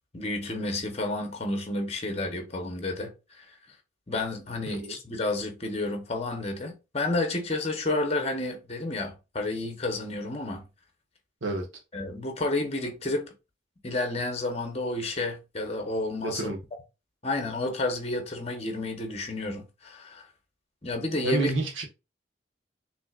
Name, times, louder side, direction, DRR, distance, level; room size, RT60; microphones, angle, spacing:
voice 1, 0.1-3.5 4.1-10.6 11.9-13.3 13.8-16.5 17.2-20.3 20.8-21.5, left 2 dB, 30° left, 1.1 m, -31 dB
voice 2, 16.2-16.6 21.2-21.8, right 3 dB, 85° right, 1.5 m, -29 dB
6.1 x 3.3 x 2.5 m
head